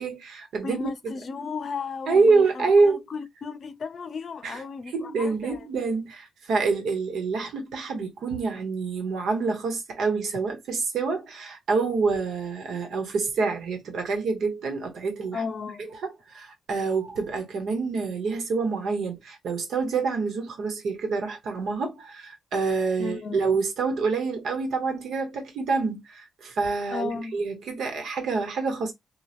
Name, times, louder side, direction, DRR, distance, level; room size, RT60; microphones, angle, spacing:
voice 1, 0.0-0.9 2.1-3.0 4.4-4.6 4.9-15.4 16.0-28.9, right 4 dB, 80° right, 1.1 m, -26 dB
voice 2, 0.6-5.7 15.3-15.9 23.0-23.5 26.9-27.4, left 5 dB, 55° left, 0.5 m, -35 dB
3.0 x 2.3 x 2.5 m
cardioid pair, 85°, 0 cm